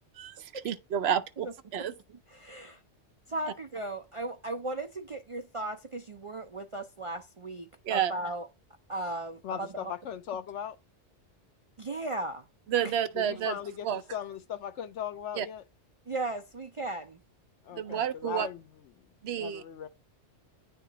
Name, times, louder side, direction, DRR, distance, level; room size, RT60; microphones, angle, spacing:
voice 1, 0.2-1.9 7.8-8.1 12.7-13.6 13.8-14.0 15.3-15.5 17.7-18.5 19.2-19.6, right 9 dB, 65° right, 0.8 m, -30 dB
voice 2, 2.3-2.8 3.3-8.5 8.9-9.9 11.8-12.4 12.8-12.9 16.1-17.2, right 2 dB, 50° right, 0.4 m, -36 dB
voice 3, 9.4-10.8 13.2-15.6 17.6-18.6 19.4-19.9, left 9 dB, 85° left, 1.0 m, -38 dB
10.0 x 3.4 x 2.8 m
omnidirectional pair, 1.2 m